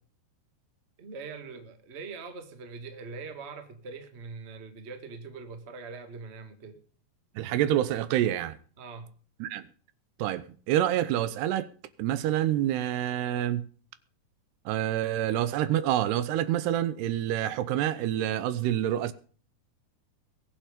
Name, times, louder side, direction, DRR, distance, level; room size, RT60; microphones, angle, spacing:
voice 1, 1.0-6.8 8.8-9.1, right 4 dB, 35° right, 1.0 m, -42 dB
voice 2, 7.4-8.6 9.4-9.7 10.2-11.7 12.0-13.6 14.7-19.1, right 12 dB, 85° right, 3.0 m, -27 dB
22.0 x 7.6 x 5.1 m
omnidirectional pair, 4.7 m